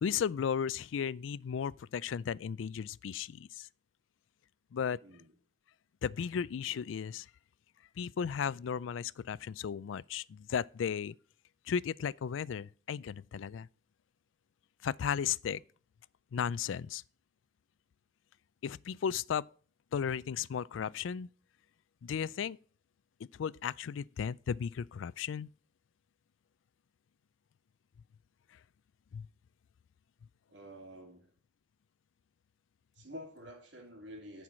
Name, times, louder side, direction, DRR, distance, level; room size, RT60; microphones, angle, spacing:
voice 1, 0.0-3.7 4.7-5.0 6.0-7.3 8.0-11.1 11.7-13.7 14.8-15.6 16.3-17.0 18.6-19.5 19.9-21.3 22.0-22.6 23.4-25.5 29.1-29.3, left 7 dB, 90° left, 0.4 m, -35 dB
voice 2, 5.0-5.3 30.5-31.3 32.9-34.4, equal, 75° right, 2.5 m, -49 dB
11.0 x 4.7 x 7.4 m
head